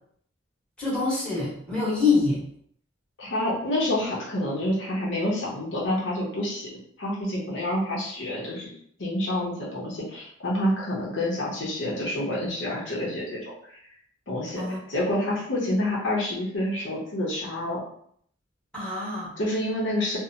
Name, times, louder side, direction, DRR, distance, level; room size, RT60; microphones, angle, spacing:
voice 1, 0.8-2.4 14.5-14.8 18.7-19.3, left 4 dB, 5° left, -10 dB, 1.1 m, -25 dB
voice 2, 3.2-6.7 7.0-8.7 9.0-13.8 14.3-17.8 19.4-20.2, left 1 dB, 65° left, -5 dB, 0.7 m, -28 dB
2.7 x 2.0 x 2.7 m, 0.65 s
head